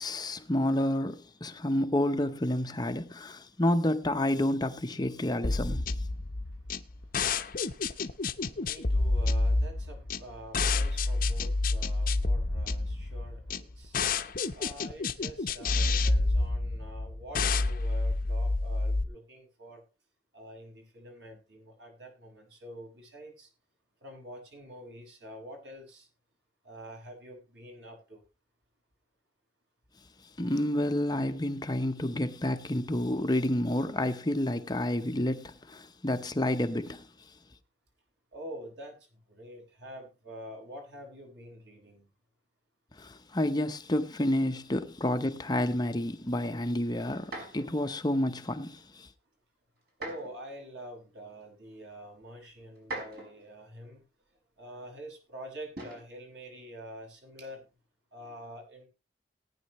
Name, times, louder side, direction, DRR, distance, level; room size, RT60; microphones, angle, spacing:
voice 1, 0.0-5.9 30.4-37.0 43.0-49.1, left 1 dB, 25° left, 0.8 m, -29 dB
sound 1, 5.4-19.0, left 3 dB, 55° left, 0.8 m, -29 dB
voice 2, 6.1-14.2 14.5-19.8 20.3-23.5 24.0-26.1 26.6-28.2 38.3-42.1 50.0-54.0 54.6-57.6 58.1-58.9, equal, 80° right, 6.1 m, -47 dB
sound 2, 47.2-47.8 49.9-50.4 51.4-51.5 52.8-53.5 55.8-56.1 57.3-57.7, right 2 dB, 60° right, 5.3 m, -41 dB
18.5 x 9.7 x 3.1 m
head